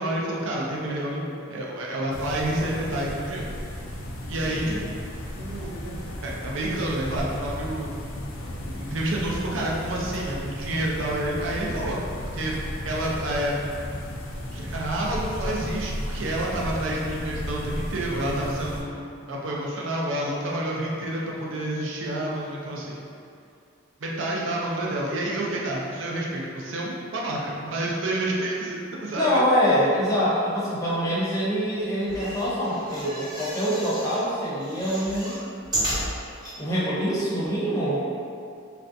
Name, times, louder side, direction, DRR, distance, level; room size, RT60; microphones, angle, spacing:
voice 1, 0.0-3.5 4.3-5.0 5.3-7.9 8.6-12.0 12.3-12.6 12.8-13.6 14.5-23.0 24.0-29.4, right 1 dB, 65° right, -3 dB, 0.5 m, -29 dB
sound 1, 2.1-18.8, equal, 75° left, 0.5 m, -34 dB
voice 2, 4.5-4.8 29.1-35.4 36.6-38.0, equal, 15° left, -9 dB, 0.7 m, -25 dB
sound 2, 32.0-34.2 34.6-36.6 37.1-37.2 37.4-37.5, equal, 20° right, 1.0 m, -33 dB
3.2 x 2.5 x 2.6 m, 2.4 s
head